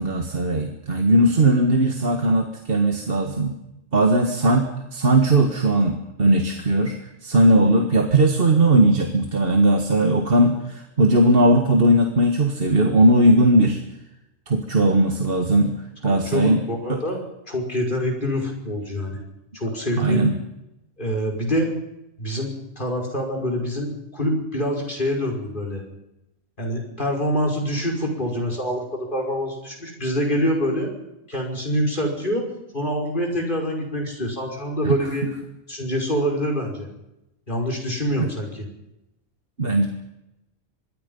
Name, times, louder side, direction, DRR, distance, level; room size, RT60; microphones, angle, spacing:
voice 1, 0.0-3.5 3.9-7.0 7.2-13.8 14.5-15.7 16.0-16.6 16.9-17.0 20.0-20.3 34.8-35.0 38.2-38.3 39.6-39.9, right 1 dB, 45° right, 3 dB, 2.0 m, -18 dB
voice 2, 16.0-17.2 17.5-19.2 19.5-20.3 21.0-21.7 22.2-25.8 26.6-30.9 31.3-32.5 32.7-35.3 35.7-36.9 37.5-38.7, equal, 35° left, 1 dB, 5.6 m, -25 dB
25.0 x 22.5 x 5.6 m, 0.91 s
omnidirectional pair, 1.4 m